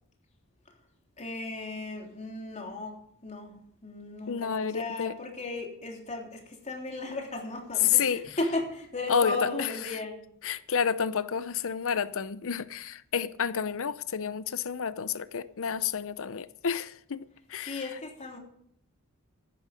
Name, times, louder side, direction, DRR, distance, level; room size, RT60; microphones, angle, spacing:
voice 1, 1.2-3.0 3.2-3.5 3.8-10.2 17.6-18.4, left 2 dB, 30° left, 3.3 m, -35 dB
voice 2, 4.3-5.1 7.8-8.2 9.1-9.7 10.4-17.8, left 7 dB, 65° left, 0.7 m, -30 dB
15.0 x 11.5 x 5.2 m
head